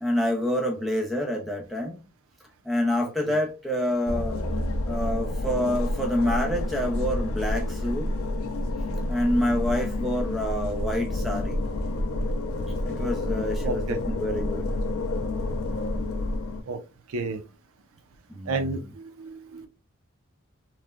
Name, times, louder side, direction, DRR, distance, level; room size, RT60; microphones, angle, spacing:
voice 1, 0.0-2.0 2.7-4.4 4.9-8.1 9.1-11.6 12.8-13.8 14.1-14.7 18.3-18.5, left 1 dB, ahead, 0.4 m, -27 dB
voice 2, 3.0-3.4 13.6-14.0 16.7-16.8 17.1-17.4 18.5-19.7, right 3 dB, 85° right, 0.4 m, -32 dB
sound 1, 4.1-16.6, left 1 dB, 80° left, 0.4 m, -29 dB
3.0 x 2.1 x 2.2 m
head